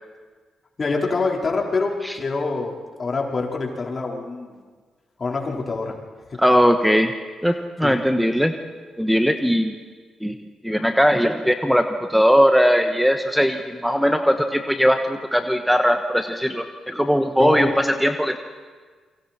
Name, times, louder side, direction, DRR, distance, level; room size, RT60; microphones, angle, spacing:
voice 1, 0.8-2.7 3.0-4.6 5.2-6.0 7.8-8.0 17.4-17.7, left 3 dB, 45° left, -1 dB, 4.5 m, -25 dB
voice 2, 6.4-7.1 7.4-8.5 9.0-9.8 10.2-10.4 10.6-18.4, equal, ahead, 6 dB, 1.4 m, -19 dB
28.0 x 24.0 x 4.5 m, 1.5 s
supercardioid pair, 50°, 0 cm